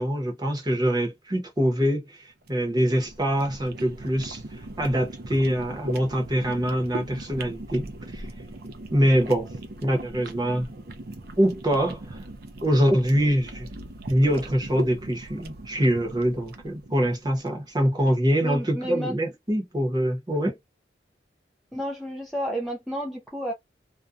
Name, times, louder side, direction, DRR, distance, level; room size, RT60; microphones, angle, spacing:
voice 1, 0.0-2.0 2.5-4.4 4.8-7.8 8.1-8.3 8.9-9.5 9.8-10.7 11.4-12.2 12.6-13.7 14.1-20.6, equal, 20° right, 0.8 m, -24 dB
sound 1, 2.4-17.7, right 1 dB, 55° right, 0.5 m, -39 dB
voice 2, 18.4-19.2 21.7-23.5, equal, ahead, 0.4 m, -31 dB
2.4 x 2.2 x 2.5 m
head